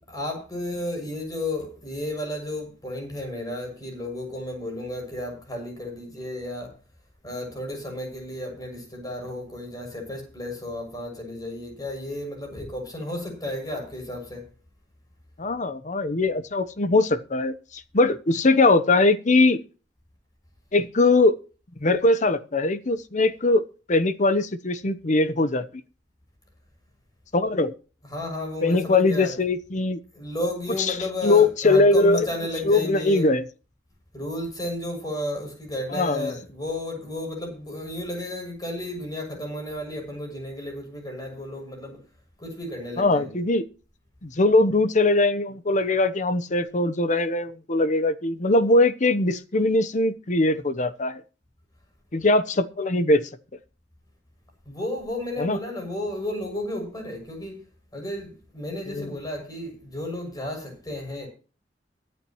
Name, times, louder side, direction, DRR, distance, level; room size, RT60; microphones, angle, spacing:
voice 1, 0.1-6.7 7.2-14.4 28.1-29.3 30.1-33.3 34.1-42.0 42.4-43.4 54.6-57.7 57.9-61.3, left 1 dB, 20° left, 6.7 m, -33 dB
voice 2, 15.4-19.6 20.7-21.3 21.8-23.6 23.9-25.6 27.3-27.7 28.6-30.0 30.9-31.0 31.2-32.3 32.6-33.4 35.9-36.3 43.0-43.6 44.2-51.2 52.1-53.2 55.4-55.6 58.9-59.1, left 2 dB, 45° left, 0.9 m, -21 dB
23.0 x 8.7 x 3.1 m
head